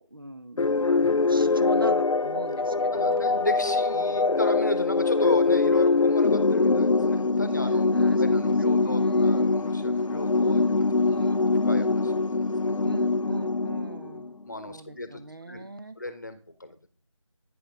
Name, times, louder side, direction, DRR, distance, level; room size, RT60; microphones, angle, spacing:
voice 1, 0.0-3.5 3.9-4.4 7.9-9.5 10.3-10.8 11.1-11.4 12.8-16.0, right 2 dB, 45° right, 10 dB, 0.6 m, -41 dB
sound 1, 0.6-14.3, left 3 dB, 90° left, 0.5 m, -23 dB
voice 2, 2.6-10.6 11.0-11.3 11.6-12.7 14.5-15.6 16.0-16.9, left 2 dB, 35° left, 10 dB, 1.0 m, -35 dB
9.4 x 6.1 x 3.5 m, 0.41 s
figure-of-eight pair, 170°, 16 cm